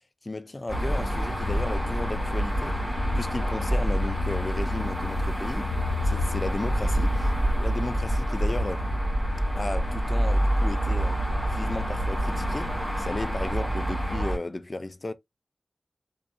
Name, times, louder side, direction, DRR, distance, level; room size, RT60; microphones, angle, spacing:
voice 1, 0.2-2.8 3.1-5.7 6.0-7.3 7.6-8.9 9.5-11.2 11.5-15.1, left 2 dB, 45° left, 0.3 m, -34 dB
sound 1, 0.7-14.4, equal, 20° left, 2.5 m, -26 dB
3.7 x 2.6 x 2.4 m
cardioid pair, 45°, 0 cm